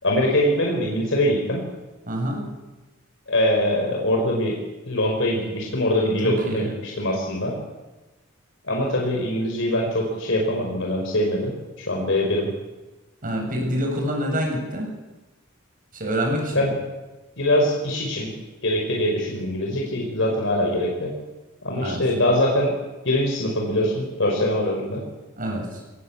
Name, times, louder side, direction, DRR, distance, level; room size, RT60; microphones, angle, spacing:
voice 1, 0.0-1.6 3.3-4.6 4.8-7.5 8.7-12.5 16.5-16.7 17.4-18.3 18.6-21.1 21.6-22.7 23.0-25.0, left 1 dB, 65° left, -1 dB, 5.0 m, -23 dB
voice 2, 2.1-2.4 6.2-6.7 13.2-14.9 15.9-16.7 21.8-22.0 25.4-25.8, equal, 45° right, 1 dB, 8.0 m, -26 dB
23.0 x 19.5 x 8.6 m, 1.1 s
head